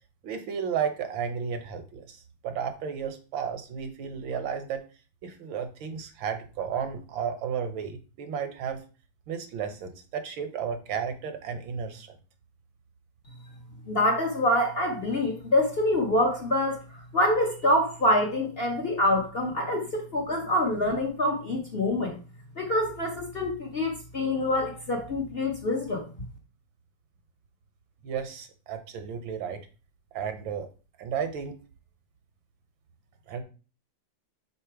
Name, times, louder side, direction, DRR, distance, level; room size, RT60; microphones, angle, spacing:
voice 1, 0.2-4.8 5.2-8.8 9.3-12.2 28.0-29.6 30.1-30.7 31.0-31.5 33.3-33.4, right 7 dB, 75° right, 8 dB, 1.7 m, -33 dB
voice 2, 13.9-22.2 22.6-26.1, left 1 dB, 40° left, 0 dB, 1.0 m, -26 dB
5.8 x 4.1 x 4.7 m, 0.35 s
omnidirectional pair, 2.1 m